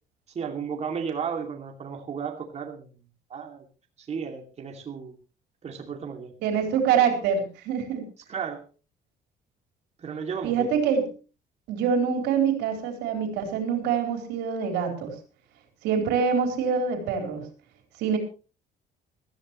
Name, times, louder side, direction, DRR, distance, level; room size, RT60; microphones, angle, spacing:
voice 1, 0.3-2.9 3.3-3.6 4.0-5.1 5.6-6.3 8.3-8.6 10.0-10.7, right 6 dB, 40° right, 2 dB, 2.7 m, -34 dB
voice 2, 6.4-8.0 10.4-11.1 11.7-15.1 15.8-17.5 18.0-18.2, right 7 dB, 90° right, 4 dB, 4.2 m, -25 dB
19.5 x 14.5 x 3.2 m, 0.34 s
cardioid pair, 110°, 17 cm